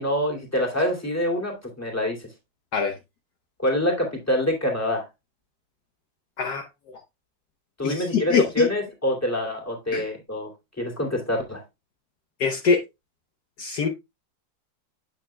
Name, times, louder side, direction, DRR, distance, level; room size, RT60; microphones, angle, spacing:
voice 1, 0.0-2.3 3.6-5.0 7.8-10.5 10.8-11.6, left 1 dB, 10° left, 2.4 m, -26 dB
voice 2, 7.8-8.7 9.9-10.0 12.4-12.8 13.6-13.9, left 5 dB, 65° left, 1.4 m, -23 dB
8.6 x 7.7 x 2.3 m
omnidirectional pair, 2.0 m